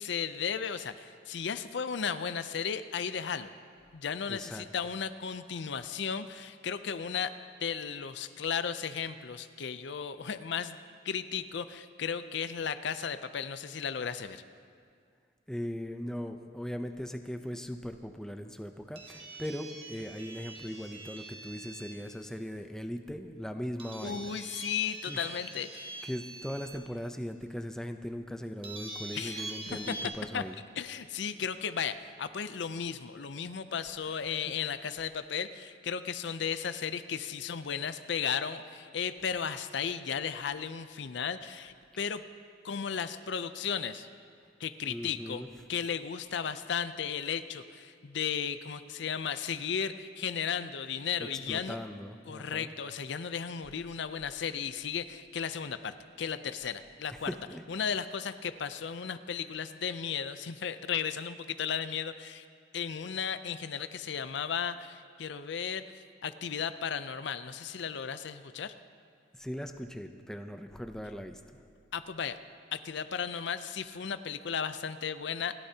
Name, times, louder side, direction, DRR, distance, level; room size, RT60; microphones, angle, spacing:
voice 1, 0.0-3.5 3.9-7.3 7.6-10.8 11.0-14.4 24.0-26.1 29.1-29.4 30.3-30.4 30.8-42.2 42.6-44.1 44.6-45.4 45.7-51.8 52.3-57.3 57.7-62.4 62.7-65.8 66.2-68.7 71.9-72.4 72.7-75.5, left 7 dB, 65° left, 12 dB, 0.5 m, -35 dB
voice 2, 4.3-4.7 15.5-24.4 25.1-25.4 26.0-30.6 34.2-34.9 44.9-45.5 51.2-52.7 57.1-57.6 69.3-71.6, equal, 5° left, 6 dB, 0.5 m, -39 dB
sound 1, 18.9-22.1 23.8-26.8 27.4-27.5 28.6-30.1, right 2 dB, 30° right, 1.7 m, -44 dB
28.5 x 12.0 x 2.8 m, 2.2 s
head